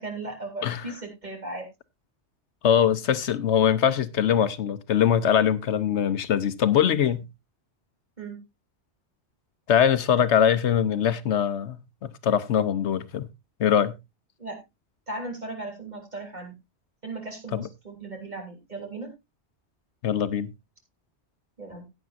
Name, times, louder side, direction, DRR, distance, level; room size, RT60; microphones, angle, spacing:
voice 1, 0.0-1.7 8.2-8.4 14.4-14.6 15.1-16.5 17.0-19.1 21.6-21.9, right 2 dB, 40° right, 3.6 m, -37 dB
voice 2, 2.6-7.3 9.7-13.3 13.6-14.0 17.5-17.7 20.0-20.5, left 9 dB, 75° left, 1.1 m, -22 dB
15.5 x 8.9 x 2.5 m
omnidirectional pair, 1.2 m